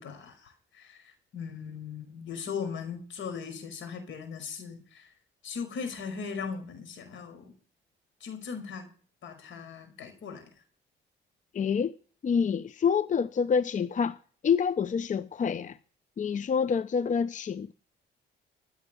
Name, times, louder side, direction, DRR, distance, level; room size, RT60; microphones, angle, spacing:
voice 1, 0.0-5.1 5.4-7.5 8.2-8.9 9.2-10.4, left 6 dB, 75° left, 5.1 m, -39 dB
voice 2, 11.5-11.9 12.2-14.2 14.4-15.8 16.2-17.7, left 6 dB, 40° left, 0.6 m, -27 dB
15.5 x 7.2 x 7.8 m
cardioid pair, 90°, 20 cm